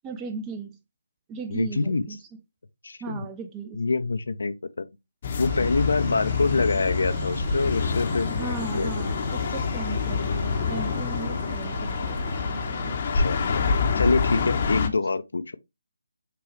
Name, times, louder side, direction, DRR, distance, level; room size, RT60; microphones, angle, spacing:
voice 1, 0.0-0.7 1.3-2.2 3.0-3.8 8.3-12.3, right 4 dB, 15° right, 0.5 m, -37 dB
voice 2, 1.5-2.1 2.8-3.3 3.7-4.9 5.4-9.1 13.1-13.7 13.9-15.6, left 3 dB, 70° left, 0.5 m, -26 dB
sound 1, 5.2-14.9, left 5 dB, 40° left, 0.8 m, -27 dB
sound 2, 5.4-13.0, right 3 dB, 50° right, 0.9 m, -38 dB
6.8 x 2.3 x 3.0 m
figure-of-eight pair, 150°, 0 cm